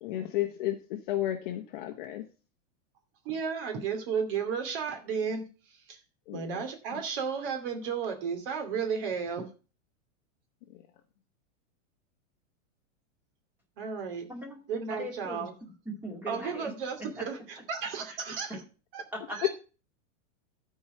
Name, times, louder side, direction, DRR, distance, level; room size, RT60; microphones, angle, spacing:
voice 1, 0.0-2.2 6.3-6.6 6.9-7.0 19.4-19.5, left 13 dB, 40° left, 5 dB, 0.9 m, -32 dB
voice 2, 3.2-5.4 6.3-9.4 13.8-14.2 14.7-15.5 16.3-18.6 18.9-19.0 19.3-19.5, right 6 dB, 45° right, 5 dB, 2.6 m, -33 dB
voice 3, 14.3-14.6 14.9-15.5 15.9-16.7 17.2-17.3 19.1-19.4, equal, 5° right, 0 dB, 2.1 m, -39 dB
13.0 x 4.8 x 5.7 m, 0.35 s
supercardioid pair, 175°, 38 cm